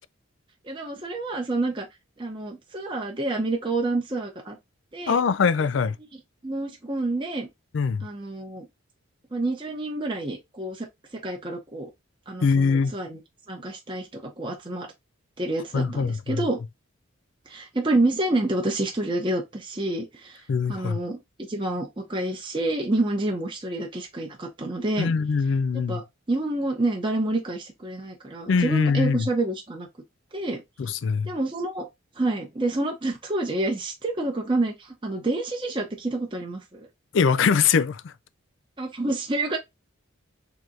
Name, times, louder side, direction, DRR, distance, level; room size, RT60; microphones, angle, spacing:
voice 1, 0.6-1.9 2.2-4.6 4.9-5.2 6.4-7.5 8.0-8.7 9.3-10.9 11.1-11.9 12.3-13.2 13.5-14.9 15.4-16.6 17.5-20.4 20.7-21.2 21.5-25.1 25.7-29.9 30.3-30.6 31.2-31.9 32.2-36.9 38.8-39.6, right 2 dB, 25° right, 0.7 m, -28 dB
voice 2, 5.1-6.0 7.7-8.1 12.4-12.9 15.7-16.4 20.5-21.0 25.0-26.0 28.5-29.3 30.8-31.3 37.1-38.1, left 5 dB, 65° left, 0.4 m, -22 dB
3.3 x 3.0 x 3.7 m
head